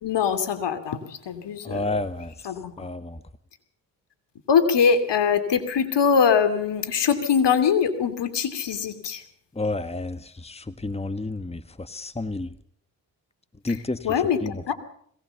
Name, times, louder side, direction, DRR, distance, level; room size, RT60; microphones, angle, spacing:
voice 1, 0.0-1.8 2.4-2.9 4.5-9.2 13.7-13.8 14.0-14.7, left 6 dB, 65° left, 10 dB, 2.8 m, -23 dB
voice 2, 1.6-2.3 2.8-3.2 9.5-12.5 13.6-14.7, left 2 dB, 15° left, 12 dB, 1.5 m, -31 dB
21.5 x 17.5 x 7.1 m, 0.65 s
hypercardioid pair, 40°, 44 cm